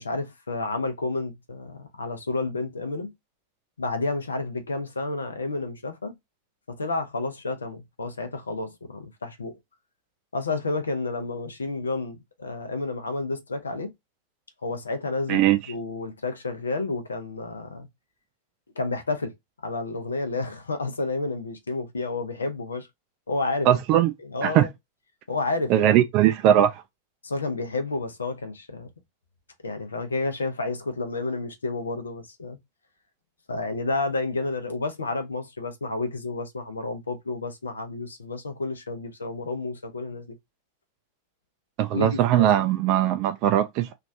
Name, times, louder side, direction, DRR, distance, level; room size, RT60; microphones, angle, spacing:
voice 1, 0.0-3.1 3.8-6.2 6.7-9.6 10.3-13.9 14.6-17.9 18.8-19.3 19.6-22.9 23.3-24.7 25.3-26.1 27.2-28.9 29.6-32.6 33.5-40.4 41.9-42.6, left 3 dB, 75° left, 0.7 m, -30 dB
voice 2, 23.7-24.1 24.4-24.7 25.7-26.8 41.8-43.9, right 11 dB, 40° right, 0.3 m, -20 dB
3.1 x 2.5 x 2.6 m
figure-of-eight pair, 90°, 0 cm